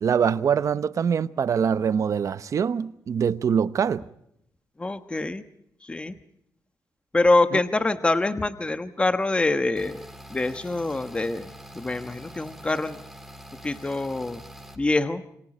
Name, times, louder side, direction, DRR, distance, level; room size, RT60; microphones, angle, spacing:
voice 1, 0.0-4.0, right 7 dB, 55° right, 0.9 m, -24 dB
voice 2, 4.8-5.4 5.8-6.2 7.1-10.0 10.3-13.0 13.6-14.4 14.8-15.2, left 2 dB, 15° left, 1.1 m, -25 dB
sound 1, 9.8-14.8, equal, ahead, 4.1 m, -44 dB
29.0 x 26.0 x 4.3 m
wide cardioid pair, 135°, 6 cm